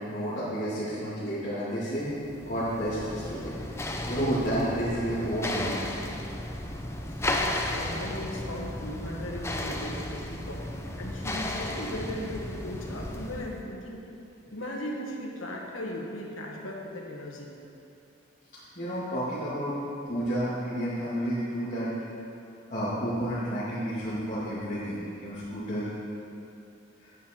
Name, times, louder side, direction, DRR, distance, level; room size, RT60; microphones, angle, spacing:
voice 1, 0.0-2.1 2.5-3.5 4.0-5.8 18.8-19.8 20.1-21.9 22.7-25.9, equal, 40° left, -13 dB, 2.2 m, -30 dB
sound 1, 2.1-13.6, left 1 dB, 15° left, 0.6 m, -34 dB
voice 2, 7.0-14.1 14.5-17.5, left 1 dB, 85° left, -1 dB, 1.6 m, -37 dB
9.3 x 9.1 x 4.5 m, 2.6 s
head